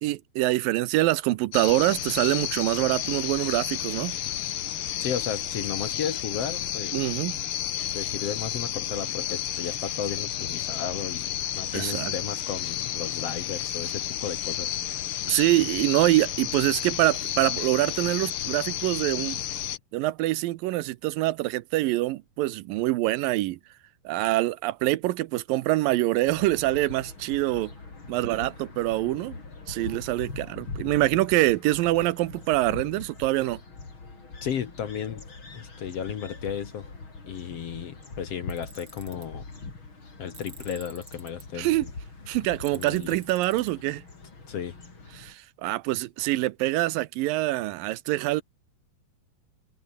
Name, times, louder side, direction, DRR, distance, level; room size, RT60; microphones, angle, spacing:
voice 1, 0.0-4.2 6.9-7.4 11.7-12.1 15.3-19.4 19.9-23.6 24.1-27.7 28.1-29.4 29.7-33.6 41.6-41.9 42.3-44.0 45.2-48.4, right 17 dB, 85° right, 2.5 m, -25 dB
sound 1, 1.5-19.8, left 11 dB, 80° left, 1.2 m, -32 dB
voice 2, 5.0-7.0 7.9-11.3 11.5-14.7 34.4-35.3 35.5-36.9 37.3-39.5 40.2-41.9 42.7-43.2 44.5-44.8, left 8 dB, 55° left, 2.0 m, -34 dB
sound 2, 26.3-45.3, left 3 dB, 35° left, 5.4 m, -42 dB
Tools, 38.5-39.3 40.3-41.4 42.6-43.7, right 4 dB, 30° right, 3.8 m, -48 dB
omnidirectional pair, 4.0 m